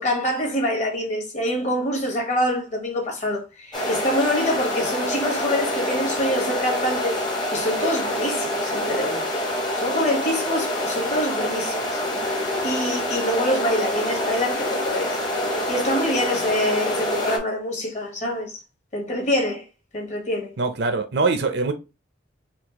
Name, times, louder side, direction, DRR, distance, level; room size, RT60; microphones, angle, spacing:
voice 1, 0.0-7.2 7.5-9.4 9.8-12.0 12.6-15.2 15.7-18.6 18.9-19.6 19.9-20.5, left 1 dB, 40° left, 1.2 m, -25 dB
sound 1, 3.7-17.4, left 1 dB, 25° left, 0.9 m, -26 dB
voice 2, 20.6-21.7, right 3 dB, 60° right, 0.6 m, -23 dB
4.4 x 2.4 x 2.9 m
head